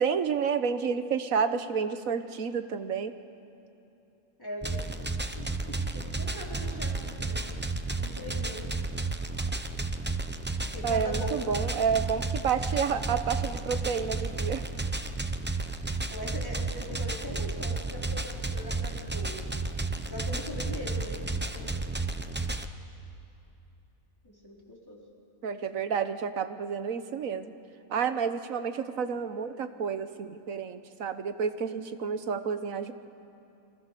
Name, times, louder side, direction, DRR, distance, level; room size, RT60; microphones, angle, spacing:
voice 1, 0.0-3.1 10.8-14.7 25.4-27.5 27.9-32.9, right 6 dB, 75° right, 10 dB, 1.4 m, -30 dB
voice 2, 4.4-5.0 5.3-7.7 8.0-8.6 10.7-11.6 16.1-19.4 20.0-21.9 24.2-25.0, equal, 15° left, -3 dB, 4.1 m, -41 dB
sound 1, 4.6-22.7, right 3 dB, 10° right, 0.6 m, -32 dB
29.5 x 23.5 x 6.8 m, 2.9 s
omnidirectional pair, 1.4 m